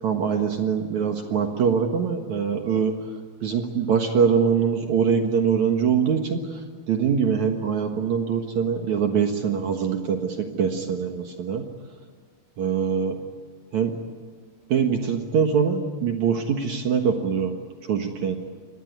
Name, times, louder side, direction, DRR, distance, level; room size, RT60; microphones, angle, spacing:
voice 1, 0.0-2.9 3.4-6.4 6.9-11.6 12.6-13.2 13.7-13.9 14.7-17.5 17.9-18.4, right 6 dB, 60° right, 4 dB, 2.1 m, -23 dB
25.0 x 19.5 x 9.6 m, 1.5 s
omnidirectional pair, 5.1 m